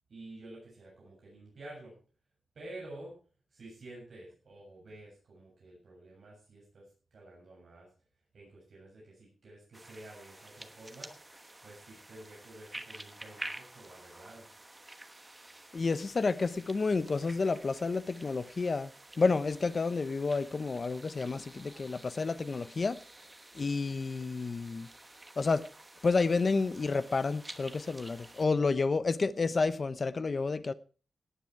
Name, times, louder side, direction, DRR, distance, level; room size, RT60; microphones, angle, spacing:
voice 1, 0.1-1.9 2.5-3.2 3.5-6.8 7.1-7.9 8.3-11.1 11.6-14.5, right 2 dB, 50° right, 7.5 m, -50 dB
sound 1, 9.7-28.5, right 1 dB, 15° right, 1.1 m, -50 dB
voice 2, 15.7-18.9 19.2-23.0 23.5-24.9 25.4-25.6 26.0-30.7, left 4 dB, 35° left, 0.7 m, -30 dB
18.0 x 9.1 x 4.7 m
wide cardioid pair, 170°, 0 cm